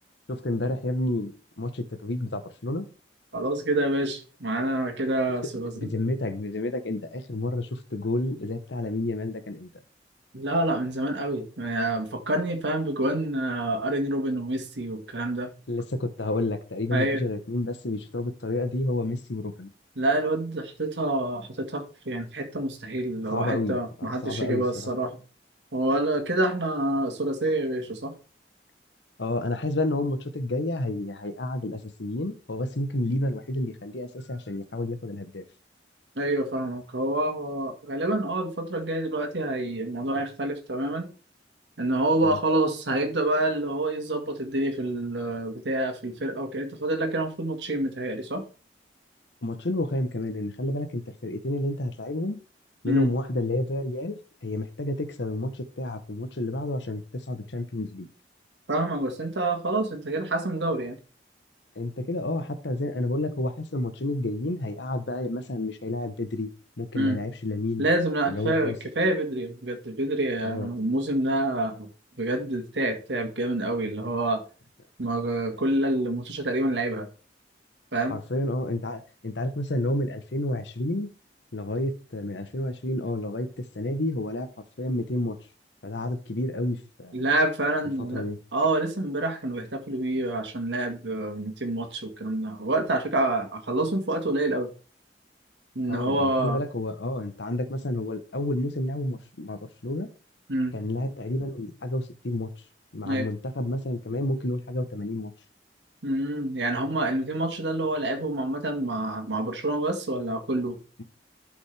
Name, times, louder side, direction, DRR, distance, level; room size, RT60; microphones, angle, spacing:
voice 1, 0.3-2.9 5.7-9.7 15.7-19.7 23.3-24.6 29.2-35.4 42.2-42.4 49.4-52.4 52.8-58.1 61.7-66.5 66.8-67.8 68.2-68.8 70.4-70.7 78.1-81.1 81.5-83.5 83.7-84.5 84.8-85.4 85.8-87.2 88.1-88.4 95.9-100.1 100.7-102.5 102.9-105.3, left 1 dB, 85° left, 1.1 m, -30 dB
voice 2, 3.3-5.9 10.3-15.5 16.9-17.2 20.0-25.2 25.7-28.1 36.2-41.1 41.8-48.4 52.9-53.1 58.7-61.0 66.9-67.2 67.8-71.9 72.2-74.4 75.0-77.1 77.9-78.2 87.1-88.2 88.5-94.7 95.8-96.6 100.5-100.8 103.1-103.3 106.0-110.8, right 1 dB, 90° right, 1.8 m, -27 dB
11.5 x 5.1 x 3.4 m
head